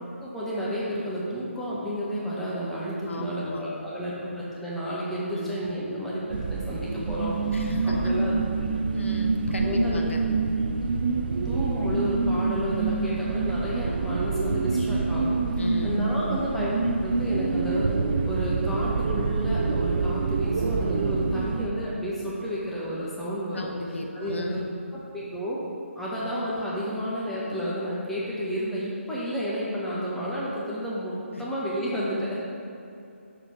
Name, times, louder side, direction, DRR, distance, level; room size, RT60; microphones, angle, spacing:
voice 1, 0.0-8.4 9.6-10.0 11.4-15.4 15.8-17.9 18.2-23.7 24.1-24.6 25.1-25.6 25.9-32.4, equal, 5° left, -7 dB, 1.0 m, -31 dB
voice 2, 3.1-3.6 5.3-5.6 7.5-8.2 8.9-10.2 15.5-16.0 23.5-24.8 26.2-26.3 31.3-31.4, left 1 dB, 65° left, 2 dB, 0.9 m, -34 dB
sound 1, 6.3-21.7, right 4 dB, 45° right, 0.4 m, -26 dB
6.8 x 6.6 x 4.3 m, 2.7 s
figure-of-eight pair, 150°, 7 cm